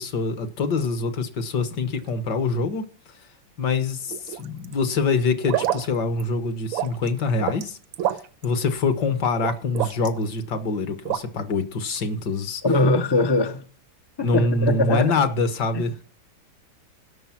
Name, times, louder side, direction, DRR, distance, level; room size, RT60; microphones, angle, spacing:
voice 1, 0.0-2.8 3.6-7.8 8.4-12.6 14.2-15.9, left 3 dB, 60° left, 1.8 m, -25 dB
sound 1, 4.1-4.7 5.4-5.9 6.2-6.3 6.7-7.7 7.9-8.5 9.4-10.2 11.1-11.2, right 12 dB, 80° right, 1.6 m, -27 dB
voice 2, 12.6-13.6 14.2-15.1, left 2 dB, 35° left, 0.4 m, -21 dB
17.0 x 6.7 x 5.8 m
omnidirectional pair, 2.2 m